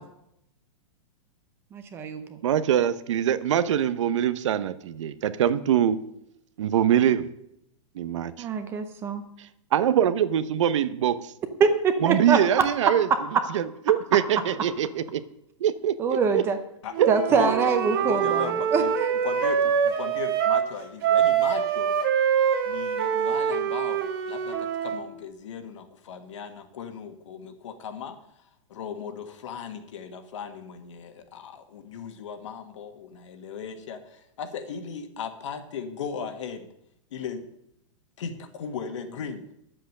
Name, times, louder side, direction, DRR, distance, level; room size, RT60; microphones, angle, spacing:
voice 1, 1.7-2.2 8.4-9.2 11.6-12.6 16.0-16.6 17.1-19.1, right 5 dB, 15° right, 8 dB, 0.6 m, -24 dB
voice 2, 2.4-6.0 6.6-7.3 7.9-8.5 9.7-11.3 12.0-13.1 13.5-15.2 15.6-16.4 17.0-17.1, right 10 dB, 65° right, 14 dB, 0.8 m, -23 dB
Wind instrument woodwind instrument, 16.9-20.7 21.0-25.0, right 8 dB, 40° right, 1.5 m, -25 dB
voice 3, 17.3-18.9 19.2-22.0 22.7-36.7 37.1-37.5 38.2-39.5, left 6 dB, 65° left, 7 dB, 1.6 m, -37 dB
10.5 x 7.8 x 6.5 m, 0.80 s
supercardioid pair, 170°, 17 cm